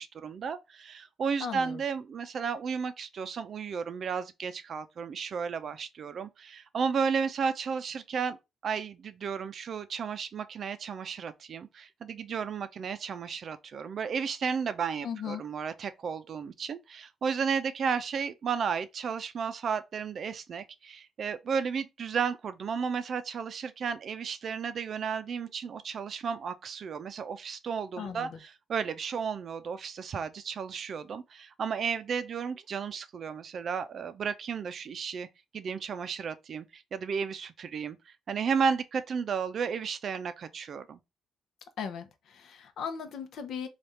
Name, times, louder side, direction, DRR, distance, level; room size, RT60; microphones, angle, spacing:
voice 1, 0.0-8.4 8.6-35.3 35.5-41.0, right 6 dB, 55° right, 0.5 m, -33 dB
voice 2, 1.4-1.8 15.0-15.4 28.0-28.4 41.8-43.7, left 7 dB, 70° left, 0.7 m, -37 dB
3.4 x 2.4 x 4.1 m
cardioid pair, 90°, 0 cm